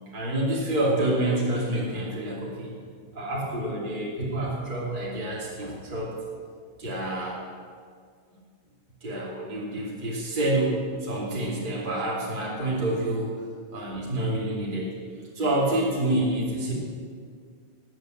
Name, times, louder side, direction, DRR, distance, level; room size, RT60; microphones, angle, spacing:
voice 1, 0.1-2.7 3.1-6.1 6.8-7.4 9.0-13.3 13.7-14.9 15.3-16.7, right 1 dB, 20° right, -5 dB, 1.4 m, -28 dB
19.0 x 8.2 x 7.8 m, 2.1 s
omnidirectional pair, 5.5 m